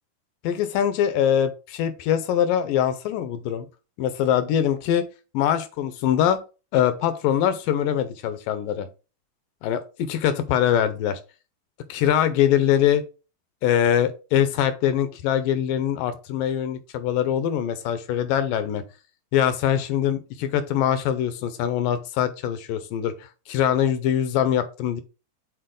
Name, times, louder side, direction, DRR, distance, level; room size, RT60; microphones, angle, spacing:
voice 1, 0.4-3.7 4.0-5.0 5.3-6.4 6.7-8.9 9.6-9.8 10.1-11.2 11.9-13.0 13.6-18.8 19.3-25.0, left 10 dB, 80° left, 2.2 m, -23 dB
6.7 x 4.1 x 3.8 m
omnidirectional pair, 4.1 m